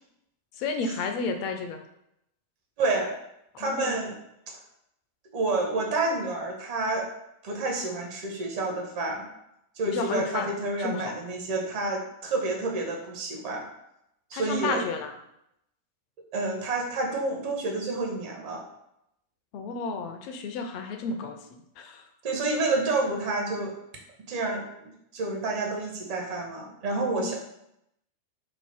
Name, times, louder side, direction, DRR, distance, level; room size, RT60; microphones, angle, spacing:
voice 1, 0.6-1.8 3.5-4.0 9.9-10.5 10.8-11.1 14.3-15.1 19.5-21.4 21.8-22.1 27.0-27.3, left 4 dB, 45° left, 5 dB, 0.4 m, -32 dB
voice 2, 2.8-3.1 3.6-4.2 4.5-4.6 5.3-7.1 7.4-9.3 9.7-13.7 14.3-14.8 16.3-18.6 22.2-23.7 24.3-27.3, right 2 dB, 45° right, 1 dB, 0.7 m, -29 dB
2.8 x 2.0 x 3.2 m, 0.80 s
figure-of-eight pair, 90°, 0 cm